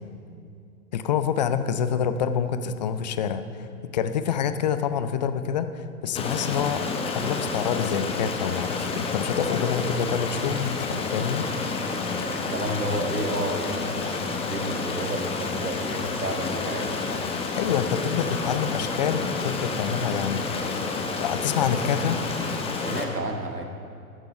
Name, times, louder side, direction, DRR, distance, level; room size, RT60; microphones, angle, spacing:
voice 1, 0.9-6.9 7.1-11.5 17.6-20.7 21.2-22.2, left 7 dB, 30° left, 11 dB, 0.4 m, -27 dB
Stream, 6.1-23.0, left 4 dB, 15° left, 0.9 m, -29 dB
voice 2, 11.9-17.0 22.8-23.6, right 1 dB, 85° right, 5 dB, 1.3 m, -32 dB
14.5 x 6.8 x 5.8 m, 2.5 s
figure-of-eight pair, 105°, 45 cm